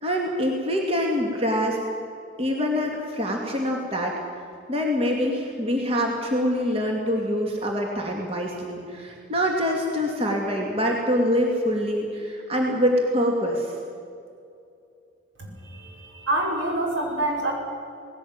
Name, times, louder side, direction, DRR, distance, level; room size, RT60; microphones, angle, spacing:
voice 1, 0.0-1.8 2.4-4.2 4.7-13.7, equal, 30° right, 0 dB, 2.4 m, -25 dB
voice 2, 15.4-17.5, right 1 dB, 80° right, -1 dB, 5.9 m, -27 dB
19.0 x 17.0 x 8.9 m, 2.5 s
head